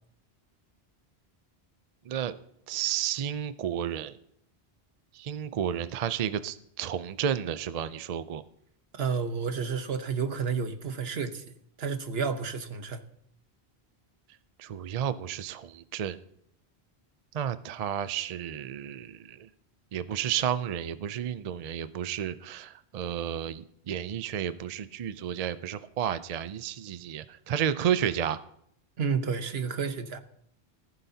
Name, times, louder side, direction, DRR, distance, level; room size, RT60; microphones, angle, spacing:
voice 1, 2.7-4.2 5.1-8.4 14.6-16.2 17.3-19.5 19.9-28.4, right 9 dB, 50° right, 0.5 m, -32 dB
voice 2, 8.9-13.0 29.0-30.2, right 5 dB, 70° right, 1.2 m, -31 dB
15.0 x 14.0 x 2.8 m
omnidirectional pair, 1.1 m